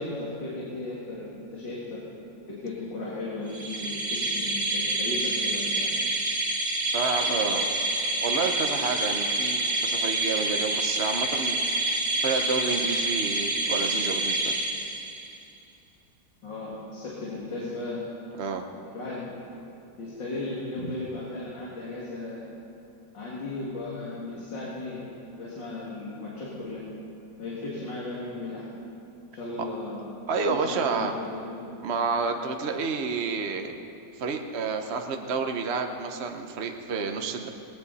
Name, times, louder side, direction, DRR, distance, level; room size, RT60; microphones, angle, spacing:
voice 1, 0.0-2.0 2.5-5.9 16.4-18.0 18.8-19.5 20.0-22.5 23.1-25.1 25.4-26.8 27.4-28.7 29.3-30.0 30.5-31.8, left 2 dB, 70° left, -6 dB, 3.1 m, -36 dB
sound 1, 3.5-15.4, right 2 dB, 30° right, 2.0 m, -27 dB
voice 2, 6.9-7.7 8.2-11.9 12.2-14.6 18.4-18.7 30.3-31.1 31.8-33.7 34.2-37.5, right 4 dB, 50° right, 4 dB, 0.8 m, -29 dB
19.0 x 18.0 x 4.2 m, 2.7 s
omnidirectional pair, 2.1 m